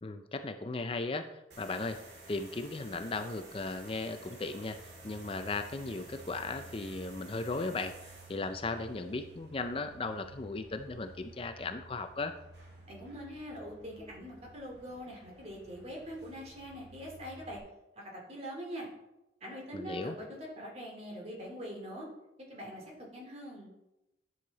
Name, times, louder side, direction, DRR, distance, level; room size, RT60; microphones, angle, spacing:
voice 1, 0.0-2.0 2.3-4.8 5.0-8.0 8.3-12.3 19.7-20.2, left 3 dB, 30° left, 8 dB, 0.5 m, -36 dB
sound 1, 1.5-17.6, right 2 dB, 70° right, 2.1 m, -52 dB
voice 2, 12.9-17.6 18.0-18.9 19.4-22.1 22.5-23.7, equal, 35° right, -1 dB, 2.5 m, -43 dB
10.5 x 6.5 x 4.0 m, 0.93 s
head